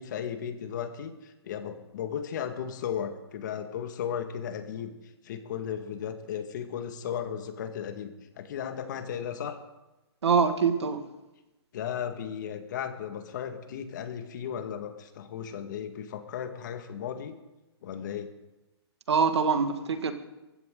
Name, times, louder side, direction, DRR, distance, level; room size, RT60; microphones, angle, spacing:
voice 1, 0.0-4.9 5.2-9.6 11.7-17.4 17.8-18.3, left 8 dB, 45° left, 7 dB, 1.8 m, -35 dB
voice 2, 10.2-11.0 19.1-20.1, right 5 dB, 80° right, 8 dB, 2.0 m, -24 dB
21.5 x 15.5 x 3.9 m, 1.0 s
hypercardioid pair, 160°, 14 cm